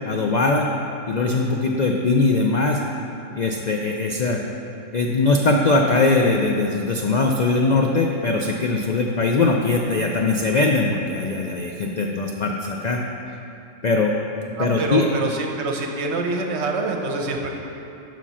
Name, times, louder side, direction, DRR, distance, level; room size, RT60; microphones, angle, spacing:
voice 1, 0.1-0.7 1.1-2.8 3.4-4.4 4.9-13.0 13.8-14.1 14.6-15.1, left 3 dB, 80° left, 1 dB, 0.4 m, -21 dB
voice 2, 14.6-17.6, right 3 dB, 60° right, 2 dB, 1.0 m, -26 dB
7.3 x 5.9 x 5.6 m, 2.8 s
omnidirectional pair, 1.4 m